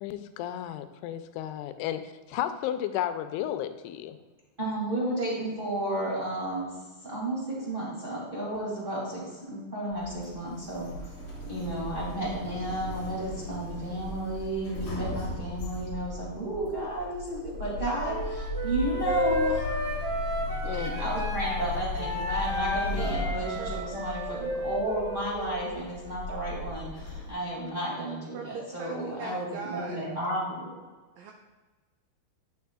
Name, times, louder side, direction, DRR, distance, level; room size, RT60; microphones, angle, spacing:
voice 1, 0.0-2.0 2.3-4.2 20.6-21.1, left 11 dB, 90° left, 10 dB, 2.6 m, -33 dB
voice 2, 4.6-6.7 7.0-10.9 11.5-19.8 20.6-30.8, right 1 dB, 20° right, -6 dB, 1.8 m, -32 dB
Sliding door, 9.9-27.3, left 1 dB, 40° left, 2.7 m, -37 dB
Wind instrument woodwind instrument, 18.1-21.6 22.0-25.7, left 2 dB, 55° right, 0.8 m, -32 dB
voice 3, 28.3-30.1 31.2-31.3, right 5 dB, 85° right, 2 dB, 1.9 m, -39 dB
9.3 x 9.2 x 2.4 m, 1.3 s
omnidirectional pair, 4.6 m